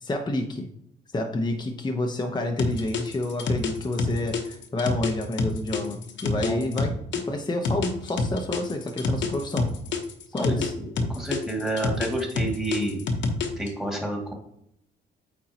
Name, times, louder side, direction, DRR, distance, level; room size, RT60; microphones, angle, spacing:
voice 1, 0.0-0.7 1.1-9.8 10.3-10.7, left 1 dB, 20° left, 3 dB, 1.0 m, -29 dB
sound 1, 2.6-7.2 7.6-10.7 11.0-13.7, left 4 dB, 65° left, 1.2 m, -27 dB
voice 2, 10.8-13.0 13.6-14.3, right 1 dB, ahead, 0 dB, 2.3 m, -29 dB
8.8 x 4.6 x 3.0 m, 0.77 s
cardioid pair, 90°, 20 cm